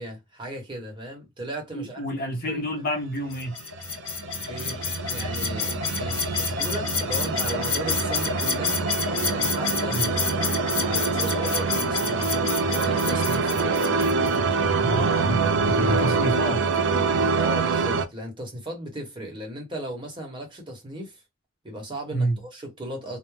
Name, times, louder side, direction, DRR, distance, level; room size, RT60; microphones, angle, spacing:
voice 1, 0.0-2.0 2.4-2.6 4.4-8.9 9.3-10.4 10.7-14.2 17.3-21.2 21.6-23.2, right 1 dB, 25° right, 1.0 m, -36 dB
voice 2, 1.7-3.5 9.9-10.1 14.8-16.6 22.1-22.4, right 1 dB, 45° left, 0.8 m, -29 dB
sound 1, 3.3-14.4, left 6 dB, 80° left, 0.7 m, -29 dB
sound 2, 3.7-18.0, right 4 dB, 60° right, 0.4 m, -25 dB
2.3 x 2.1 x 3.1 m
head